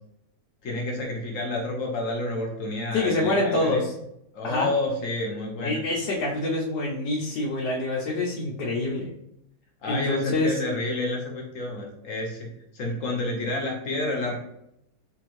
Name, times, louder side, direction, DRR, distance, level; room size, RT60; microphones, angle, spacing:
voice 1, 0.6-3.8 4.3-5.8 9.8-12.5 12.7-14.4, left 2 dB, 55° left, -1 dB, 1.0 m, -29 dB
voice 2, 2.9-3.9 4.4-4.7 5.6-9.1 9.8-10.6, left 2 dB, 90° left, -4 dB, 1.4 m, -26 dB
4.4 x 2.7 x 3.0 m, 0.79 s
omnidirectional pair, 1.8 m